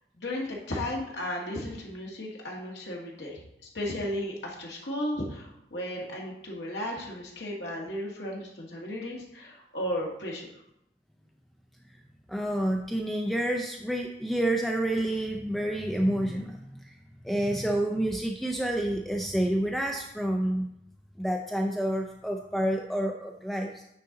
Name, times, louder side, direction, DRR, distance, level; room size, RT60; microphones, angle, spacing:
voice 1, 0.1-10.5, left 1 dB, 75° left, -3 dB, 1.7 m, -35 dB
voice 2, 12.3-17.0 17.2-20.7 21.2-23.8, right 1 dB, ahead, 2 dB, 0.4 m, -29 dB
9.6 x 4.0 x 3.8 m, 0.79 s
head